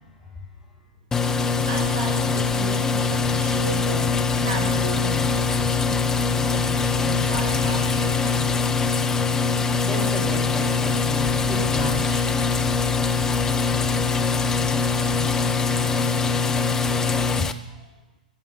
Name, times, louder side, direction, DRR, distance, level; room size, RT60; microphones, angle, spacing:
sound 1, 1.1-17.5, left 5 dB, 10° left, 0.7 m, -22 dB
voice 1, 1.4-5.5 6.3-8.6, right 4 dB, 45° right, 4 dB, 1.5 m, -35 dB
voice 2, 9.4-12.4 17.7-17.8, right 1 dB, 5° right, -4 dB, 6.2 m, -33 dB
14.0 x 9.0 x 7.7 m, 1.0 s
figure-of-eight pair, 105°, 5 cm